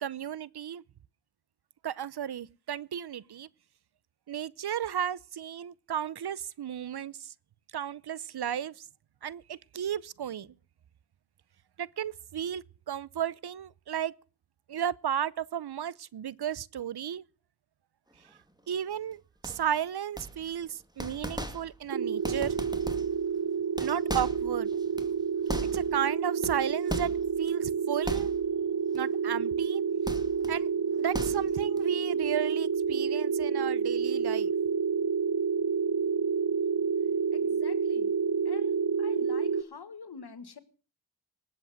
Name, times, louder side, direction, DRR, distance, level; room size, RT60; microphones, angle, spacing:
voice 1, 0.0-0.8 1.8-3.5 4.3-7.3 7.7-8.7 9.2-10.5 11.8-14.1 14.7-17.2 18.7-22.6 23.8-24.7 25.7-27.1 27.4-28.3 28.9-29.8 30.5-30.7 31.0-34.5, right 9 dB, 80° right, 0.7 m, -34 dB
sound 1, 19.4-19.8 20.2-20.7 21.0-21.9 22.2-23.3 23.6-26.0 26.4-27.5 28.0-28.6 29.0-29.1 30.1-30.6 31.0-31.8, right 1 dB, 10° right, 2.3 m, -38 dB
sound 2, 21.9-39.6, right 6 dB, 65° right, 1.0 m, -29 dB
voice 2, 37.3-38.1 38.5-40.6, left 5 dB, 75° left, 1.7 m, -46 dB
19.5 x 8.1 x 7.8 m
cardioid pair, 45°, 39 cm